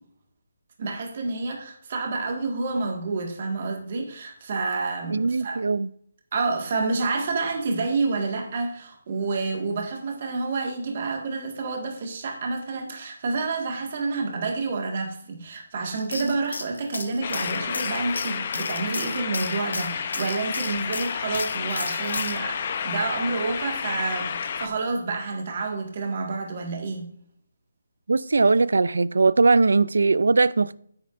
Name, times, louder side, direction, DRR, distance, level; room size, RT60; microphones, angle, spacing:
voice 1, 0.8-5.6 6.3-27.1, right 3 dB, 40° right, 1.8 m, -29 dB
voice 2, 5.1-5.9 28.1-30.8, right 3 dB, 80° right, 0.4 m, -20 dB
sound 1, 16.0-22.4, left 3 dB, 90° left, 1.3 m, -34 dB
sound 2, 17.2-24.7, left 6 dB, 35° left, 0.7 m, -30 dB
9.8 x 9.2 x 2.6 m
hypercardioid pair, 170°, 0 cm